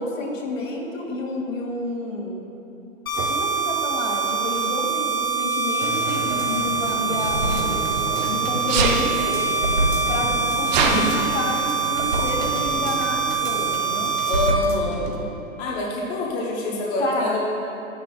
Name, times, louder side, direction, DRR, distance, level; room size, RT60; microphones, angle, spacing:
voice 1, 0.0-2.5 3.3-8.0 8.3-9.5 10.1-14.1 17.0-17.4, left 2 dB, 70° left, -2 dB, 2.2 m, -30 dB
sound 1, 3.1-14.5, right 5 dB, 85° left, 1.9 m, -24 dB
Sneeze, 3.2-3.3 4.4-4.8 6.8-8.3 8.7-9.0 9.8-9.9 10.1-11.0, right 5 dB, 30° right, 0.8 m, -24 dB
sound 2, 5.8-15.2 15.6-15.7, right 2 dB, 70° right, 1.6 m, -30 dB
voice 2, 14.3-15.1 15.6-17.4, left 2 dB, 20° left, -3 dB, 0.8 m, -25 dB
12.0 x 10.0 x 2.3 m, 2.9 s
hypercardioid pair, 135°, 40 cm